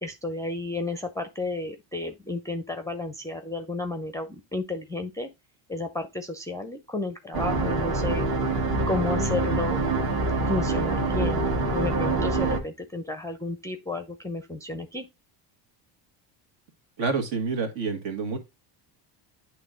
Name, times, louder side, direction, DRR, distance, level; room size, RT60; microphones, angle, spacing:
voice 1, 0.0-5.3 5.7-8.3 8.9-9.9 10.5-15.1, left 2 dB, 5° left, 0.5 m, -32 dB
sound 1, 7.3-12.6, right 2 dB, 45° right, 1.6 m, -25 dB
voice 2, 17.0-18.4, right 4 dB, 60° right, 1.8 m, -28 dB
8.4 x 3.1 x 3.8 m
cardioid pair, 110°, 50 cm